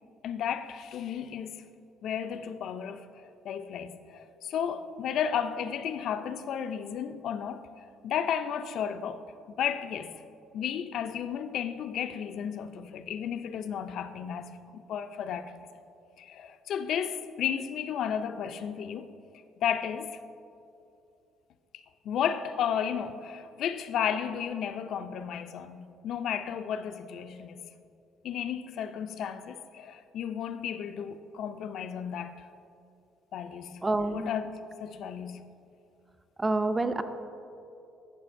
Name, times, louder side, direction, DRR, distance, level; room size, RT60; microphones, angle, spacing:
voice 1, 0.2-1.6 2.0-7.7 8.0-9.2 9.5-10.2 10.5-15.5 16.2-19.1 19.6-20.2 21.7-27.6 28.2-32.3 33.3-33.8 34.1-34.5 34.8-35.4, left 8 dB, 65° left, 0.4 m, -33 dB
voice 2, 33.8-34.3 36.4-37.0, right 2 dB, 15° right, 0.4 m, -27 dB
13.5 x 5.9 x 2.5 m
cardioid pair, 125°, 0 cm